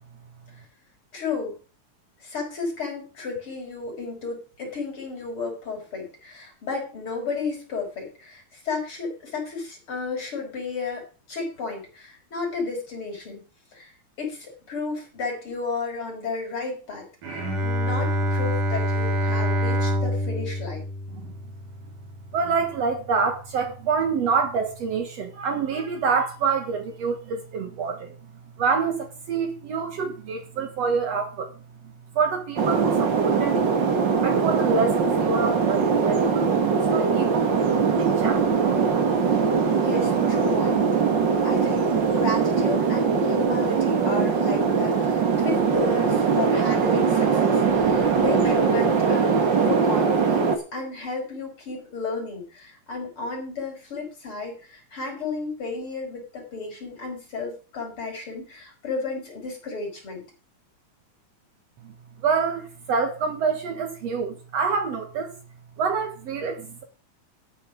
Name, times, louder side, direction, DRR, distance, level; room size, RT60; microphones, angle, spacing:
voice 1, 1.1-1.6 2.2-13.4 13.7-13.9 14.2-20.8 39.3-39.4 39.8-40.9 41.4-60.2, left 4 dB, 40° left, 5.9 m, -33 dB
Bowed string instrument, 17.2-22.5, equal, 85° right, 4.5 m, -26 dB
voice 2, 22.3-28.2 28.6-33.7 34.2-37.6 38.0-38.5 61.8-61.9 62.2-65.4 65.8-66.8, right 5 dB, 60° right, 2.4 m, -27 dB
sound 1, 32.6-50.6, right 5 dB, 40° right, 2.0 m, -21 dB
12.5 x 9.2 x 5.2 m
omnidirectional pair, 3.6 m